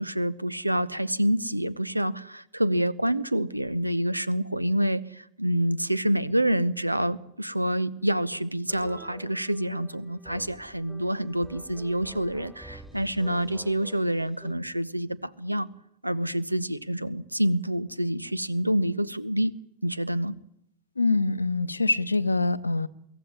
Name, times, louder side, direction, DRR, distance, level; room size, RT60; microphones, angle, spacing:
voice 1, 0.0-15.7 16.0-19.5 19.8-20.4, right 1 dB, 85° right, 0.8 m, -27 dB
sound 1, 8.7-14.5, right 1 dB, ahead, 1.1 m, -48 dB
voice 2, 21.0-22.9, left 3 dB, 80° left, 0.8 m, -24 dB
23.0 x 15.5 x 9.8 m
figure-of-eight pair, 90°, 0 cm